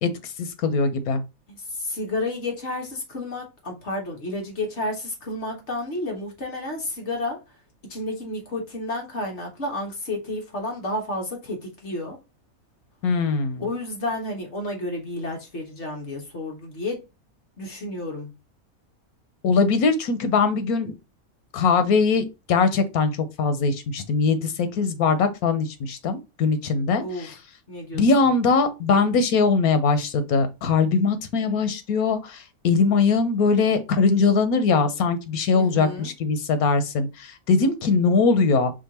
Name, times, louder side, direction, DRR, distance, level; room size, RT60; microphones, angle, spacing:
voice 1, 0.0-1.2 13.0-13.7 19.4-20.9 21.5-27.3 27.9-38.7, left 4 dB, 90° left, 1.3 m, -21 dB
voice 2, 1.5-7.4 7.9-12.2 13.6-17.0 17.6-18.3 27.0-27.4 27.7-28.0 35.5-36.1, left 2 dB, 50° left, 1.6 m, -31 dB
5.0 x 2.6 x 4.2 m
omnidirectional pair, 1.5 m